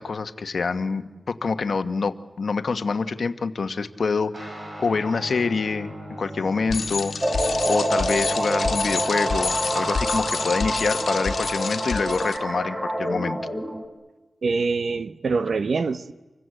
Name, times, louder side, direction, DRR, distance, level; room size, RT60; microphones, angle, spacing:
voice 1, 0.0-4.5 4.8-5.9 6.2-7.1 7.7-13.4, left 4 dB, 60° left, 1.3 m, -26 dB
sound 1, 4.3-12.1, equal, 40° right, 6.5 m, -41 dB
Bicycle, 6.7-12.4, left 5 dB, 75° left, 1.7 m, -29 dB
sound 2, 7.2-13.8, right 1 dB, 20° right, 3.4 m, -27 dB
voice 2, 14.4-16.1, right 4 dB, 65° right, 0.8 m, -24 dB
29.0 x 24.5 x 7.9 m
wide cardioid pair, 130°, 0 cm